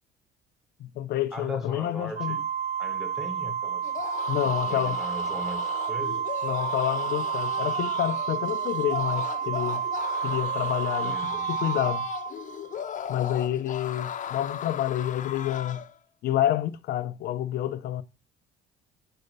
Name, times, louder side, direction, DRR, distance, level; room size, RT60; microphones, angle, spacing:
voice 1, 0.8-2.4 4.3-5.0 6.4-9.8 10.2-11.1 11.5-12.1 13.1-15.8 16.2-18.0, left 12 dB, 70° left, 0.8 m, -28 dB
voice 2, 1.3-2.4 2.8-3.9 4.5-6.2 11.0-11.5, left 1 dB, ahead, 2.1 m, -39 dB
Organ, 2.2-12.9, right 8 dB, 40° right, 1.4 m, -30 dB
sound 1, 3.8-15.9, left 9 dB, 50° left, 1.0 m, -37 dB
7.9 x 4.3 x 6.7 m
cardioid pair, 110°, 17 cm